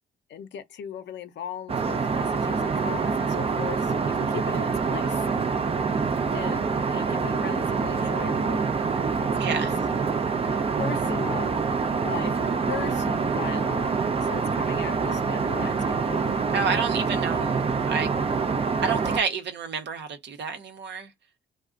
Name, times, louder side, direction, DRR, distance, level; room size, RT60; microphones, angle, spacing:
voice 1, 0.3-5.3 6.3-8.7 9.5-9.6 10.5-11.7 12.0-16.4, left 9 dB, 60° left, 0.7 m, -38 dB
Aircraft, 1.7-19.2, right 5 dB, 30° right, 0.5 m, -26 dB
voice 2, 9.4-9.7 16.5-17.6 17.9-18.1 18.8-21.1, right 5 dB, 60° right, 0.9 m, -29 dB
2.4 x 2.3 x 3.8 m
cardioid pair, 90°, 20 cm